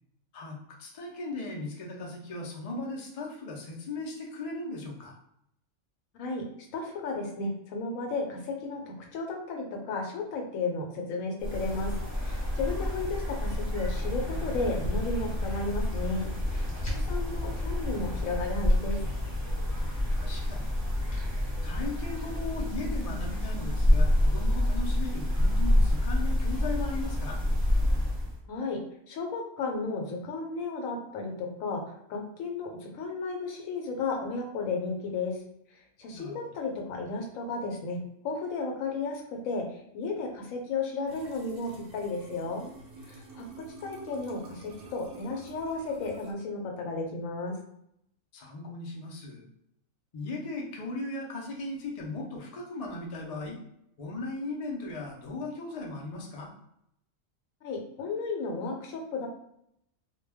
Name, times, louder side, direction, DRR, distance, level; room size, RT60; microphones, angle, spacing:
voice 1, 0.3-5.2 12.7-12.9 16.7-17.3 20.1-20.7 21.6-27.4 36.1-36.4 48.3-49.4 50.1-53.6 54.0-56.5, left 2 dB, 65° left, -1 dB, 0.3 m, -37 dB
voice 2, 6.1-19.0 28.5-35.4 35.7-42.7 43.0-47.6 57.6-59.3, left 3 dB, 80° left, 2 dB, 1.0 m, -34 dB
sound 1, 11.4-28.4, left 1 dB, 20° right, 0.7 m, -28 dB
sound 2, 14.0-26.2, equal, 50° left, 0.7 m, -48 dB
sound 3, 41.1-46.3, right 2 dB, 55° right, 0.7 m, -49 dB
2.2 x 2.2 x 3.3 m, 0.77 s
omnidirectional pair, 1.4 m